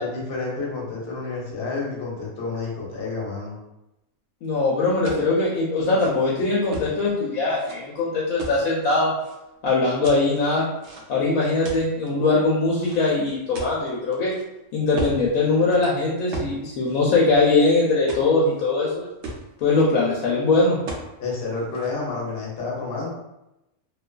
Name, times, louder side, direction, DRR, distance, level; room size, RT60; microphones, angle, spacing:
voice 1, 0.0-3.5 19.0-19.1 21.2-23.1, left 3 dB, 50° left, -3 dB, 0.9 m, -30 dB
voice 2, 4.4-9.1 9.6-10.7 11.1-14.3 14.7-19.0 19.6-20.8, left 3 dB, 80° left, -5 dB, 1.0 m, -21 dB
sound 1, 5.0-5.3 5.8-6.9 7.5-7.7 8.4-9.3 10.0-11.2 11.6-12.1 12.8-14.4 15.0-15.2 15.6-15.8 16.3-16.5 16.8-17.7 18.1-18.6 18.9-19.0 19.2-19.8 20.9-21.1 21.4-21.9, right 2 dB, 65° right, 0.8 m, -36 dB
2.5 x 2.3 x 2.2 m, 0.91 s
omnidirectional pair, 1.5 m